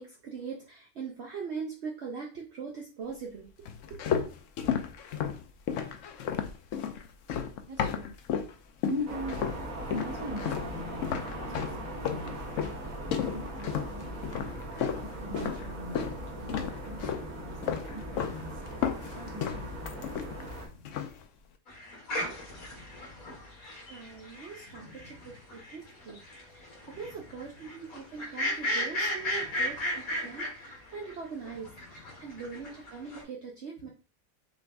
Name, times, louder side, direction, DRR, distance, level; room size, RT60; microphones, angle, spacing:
voice 1, 0.0-3.5 3.9-4.1 23.9-26.2 26.5-33.9, right 5 dB, 55° right, -1 dB, 1.0 m, -41 dB
sound 1, 3.6-8.5 8.8-9.6 9.9-16.2 16.5-17.3 17.6-18.4 18.7-20.5 20.8-21.2, left 8 dB, 70° left, 0.9 m, -33 dB
voice 2, 7.7-8.1 8.8-14.3 15.0-16.1 16.4-18.6 19.2-21.1 22.4-23.5 24.7-25.4 26.8-27.2 29.2-29.6 31.5-32.3 33.8-33.9, left 1 dB, 25° right, 1 dB, 1.2 m, -43 dB
sound 2, 9.1-20.7, right 1 dB, 80° right, 1.8 m, -39 dB
sound 3, 21.7-31.1 31.5-33.2, equal, 85° left, 2.2 m, -35 dB
6.0 x 2.5 x 3.5 m, 0.35 s
omnidirectional pair, 1.4 m